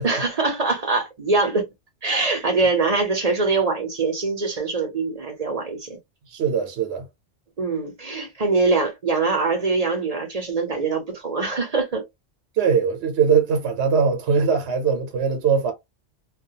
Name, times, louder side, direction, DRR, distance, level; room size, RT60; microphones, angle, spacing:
voice 1, 0.0-1.7 2.0-6.0 7.6-12.0, right 3 dB, 40° right, 0.7 m, -23 dB
voice 2, 6.3-7.1 12.6-15.7, right 6 dB, 70° right, 0.9 m, -21 dB
2.3 x 2.3 x 2.7 m
omnidirectional pair, 1.2 m